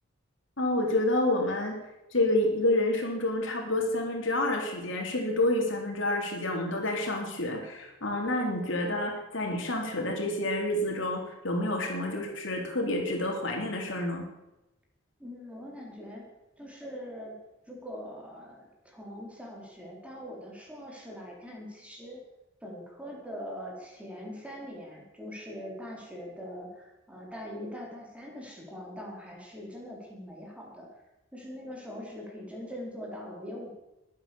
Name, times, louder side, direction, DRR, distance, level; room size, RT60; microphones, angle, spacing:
voice 1, 0.6-1.8 2.1-14.3, left 1 dB, 65° left, 1 dB, 3.6 m, -28 dB
voice 2, 15.2-16.3 16.6-17.4 17.7-22.2 22.6-30.9 31.3-33.7, equal, 5° right, -2 dB, 4.3 m, -42 dB
22.0 x 9.1 x 7.1 m, 0.97 s
head